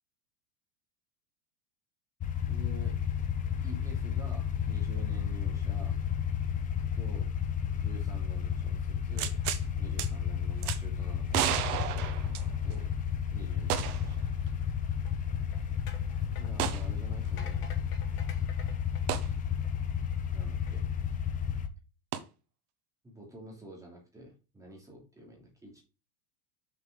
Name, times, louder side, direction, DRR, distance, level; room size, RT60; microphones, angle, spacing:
sound 1, 2.2-21.7, left 8 dB, 15° left, 0.7 m, -32 dB
voice 1, 2.5-3.0 3.6-5.9 6.9-7.3 7.7-9.3 9.8-12.9 13.3-14.3 16.4-17.7 20.3-20.8 23.0-25.8, equal, 5° right, -2 dB, 2.8 m, -49 dB
sound 2, 9.2-9.6 10.0-10.1 10.6-10.8 11.3-12.8 13.7-14.1 14.5-14.6 16.6-16.9 19.1-19.3 22.1-22.2, right 11 dB, 70° right, 1.4 m, -32 dB
sound 3, 15.1-19.9 20.5-20.7, left 6 dB, 75° left, 2.9 m, -51 dB
6.7 x 5.5 x 5.0 m, 0.31 s
supercardioid pair, 160°, 46 cm